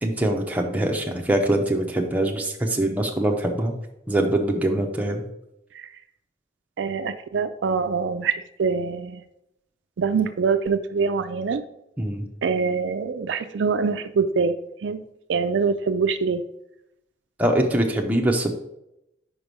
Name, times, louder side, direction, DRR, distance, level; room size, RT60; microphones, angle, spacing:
voice 1, 0.0-3.7 4.1-5.2 12.0-12.3 17.4-18.5, right 1 dB, 10° right, 1 dB, 0.7 m, -23 dB
voice 2, 6.8-9.2 10.0-11.6 12.4-14.6 14.8-15.0 15.3-16.4, right 5 dB, 75° right, 10 dB, 0.4 m, -24 dB
5.2 x 4.8 x 5.3 m, 0.84 s
head